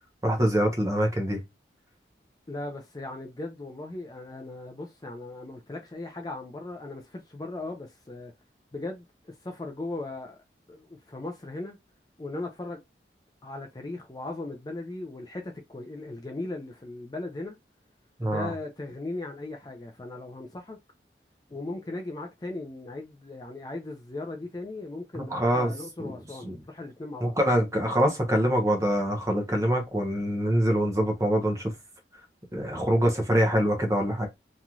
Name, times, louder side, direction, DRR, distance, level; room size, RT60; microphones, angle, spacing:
voice 1, 0.2-1.4 18.2-18.5 25.1-25.7 26.0-26.1 26.4-26.5 27.2-31.7 32.5-34.3, equal, 20° right, 0.8 m, -24 dB
voice 2, 2.5-8.3 8.7-11.8 12.2-12.8 13.4-17.6 18.2-20.8 21.5-27.3, left 2 dB, 20° left, 0.4 m, -38 dB
3.0 x 2.6 x 2.3 m
head